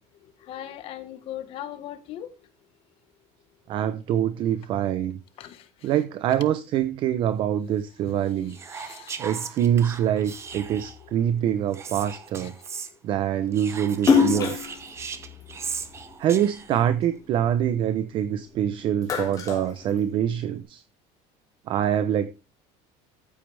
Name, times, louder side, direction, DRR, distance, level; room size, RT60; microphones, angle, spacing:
voice 1, 0.2-2.3 5.4-5.9 8.7-9.2 11.0-11.1 12.4-12.5, left 11 dB, 40° left, 1.5 m, -39 dB
voice 2, 3.7-5.2 5.8-8.6 9.2-12.5 13.0-14.6 16.2-20.8 21.7-22.3, right 10 dB, 35° right, 0.7 m, -25 dB
Whispering, 8.5-11.0 11.7-12.9 13.5-16.8, right 6 dB, 20° right, 1.0 m, -37 dB
Splash splatter, 14.0-16.5 17.0-18.4 18.8-20.5, left 6 dB, 25° left, 2.9 m, -25 dB
14.0 x 8.4 x 3.5 m
cardioid pair, 180°, 14 cm